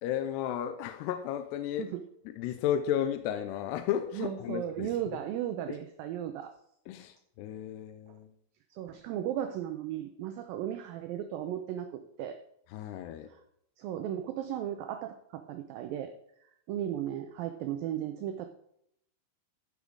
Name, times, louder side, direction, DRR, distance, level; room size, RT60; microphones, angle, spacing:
voice 1, 0.0-1.9 2.3-4.9 6.9-8.3 12.7-13.3, left 10 dB, 85° left, 9 dB, 2.8 m, -33 dB
voice 2, 4.1-6.5 8.8-12.4 13.8-16.1 16.4-18.5, right 11 dB, 80° right, 7 dB, 2.1 m, -36 dB
14.5 x 5.5 x 6.3 m, 0.73 s
omnidirectional pair, 4.9 m